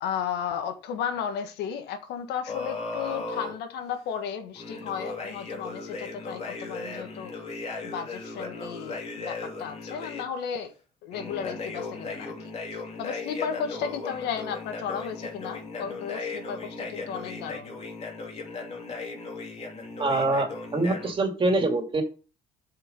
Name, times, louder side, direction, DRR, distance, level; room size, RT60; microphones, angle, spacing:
voice 1, 0.0-7.3 7.8-10.7 11.0-12.5 13.0-17.8, left 7 dB, 85° left, 1.5 m, -34 dB
sound 1, 2.5-3.5 4.5-10.2 11.1-21.1, left 3 dB, 40° left, 3.2 m, -37 dB
voice 2, 20.0-22.0, right 2 dB, 30° right, 2.6 m, -25 dB
7.9 x 5.6 x 5.3 m
cardioid pair, 110°, 17 cm